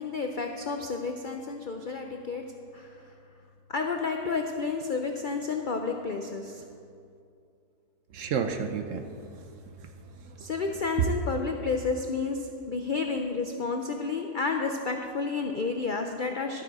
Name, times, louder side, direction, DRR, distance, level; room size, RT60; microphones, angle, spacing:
voice 1, 0.0-2.4 2.7-2.9 3.7-6.6 10.4-16.6, left 4 dB, 65° left, 4 dB, 0.5 m, -31 dB
voice 2, 8.1-10.5 11.0-11.1, right 7 dB, 65° right, 7 dB, 0.9 m, -32 dB
12.0 x 8.6 x 4.9 m, 2.4 s
omnidirectional pair, 1.7 m